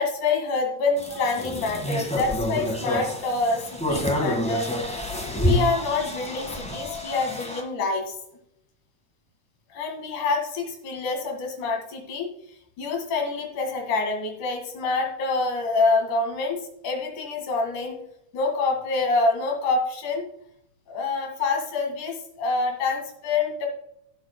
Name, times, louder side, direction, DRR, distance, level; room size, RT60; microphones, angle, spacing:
voice 1, 0.0-5.0 5.4-8.2 9.7-12.3 12.8-18.0 18.3-20.2 20.9-23.7, left 3 dB, 75° left, 2 dB, 3.5 m, -26 dB
sound 1, 1.0-7.6, left 1 dB, 5° left, 0.4 m, -28 dB
15.5 x 7.7 x 2.2 m, 0.75 s
omnidirectional pair, 3.5 m